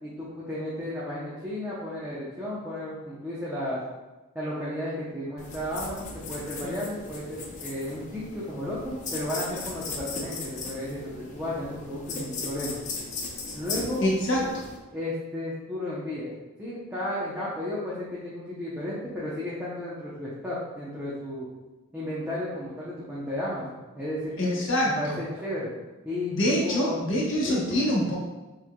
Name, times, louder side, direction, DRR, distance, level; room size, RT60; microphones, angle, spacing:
voice 1, 0.0-3.8 4.3-12.8 13.5-14.0 14.9-16.3 16.6-21.5 21.9-24.6 25.0-25.7 26.0-26.3 26.6-27.0 27.4-27.9, left 1 dB, 10° right, -9 dB, 0.7 m, -33 dB
sound 1, 5.4-14.8, left 3 dB, 35° left, 0.5 m, -37 dB
voice 2, 14.0-14.6 24.4-25.2 26.3-28.2, equal, 60° left, -4 dB, 1.0 m, -25 dB
5.9 x 3.2 x 2.2 m, 1.1 s
head